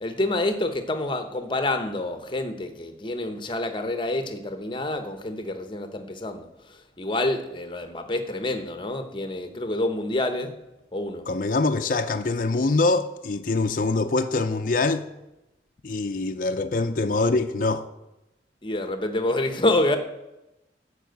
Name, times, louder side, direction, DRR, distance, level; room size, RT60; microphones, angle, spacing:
voice 1, 0.0-6.5 7.0-10.5 10.9-11.3 18.6-20.0, left 2 dB, 30° left, 0.9 m, -27 dB
voice 2, 11.3-15.0 15.8-17.8, left 3 dB, 50° left, 0.5 m, -24 dB
12.0 x 4.9 x 7.9 m
head